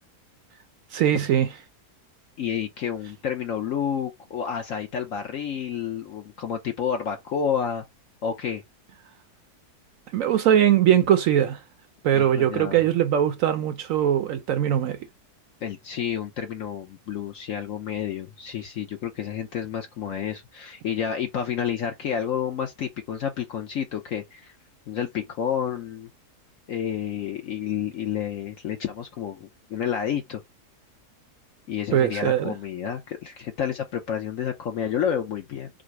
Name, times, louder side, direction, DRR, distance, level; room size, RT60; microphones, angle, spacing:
voice 1, 0.9-1.5 10.1-11.6 12.0-15.0 31.9-32.5, right 10 dB, 70° right, 0.8 m, -21 dB
voice 2, 2.4-7.8 8.2-8.6 12.1-12.8 15.6-24.5 24.9-26.1 26.7-30.4 31.7-35.7, left 8 dB, 65° left, 1.0 m, -30 dB
4.9 x 2.0 x 4.6 m
omnidirectional pair, 1.7 m